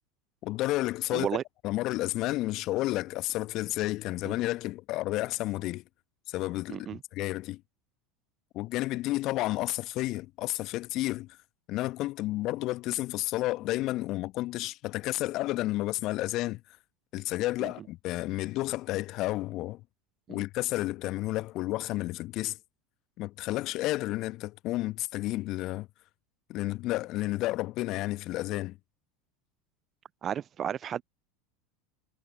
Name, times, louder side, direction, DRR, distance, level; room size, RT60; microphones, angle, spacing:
voice 1, 0.4-1.3 1.6-5.8 6.3-7.6 8.5-11.4 11.7-16.6 17.1-19.8 20.3-22.6 23.2-25.9 26.5-28.8, left 17 dB, 50° left, 1.1 m, -31 dB
voice 2, 1.1-1.4 4.3-4.4 6.7-7.0 17.6-17.7 20.3-20.5 30.2-31.0, right 9 dB, 35° right, 0.4 m, -33 dB
figure-of-eight pair, 80°, 0 cm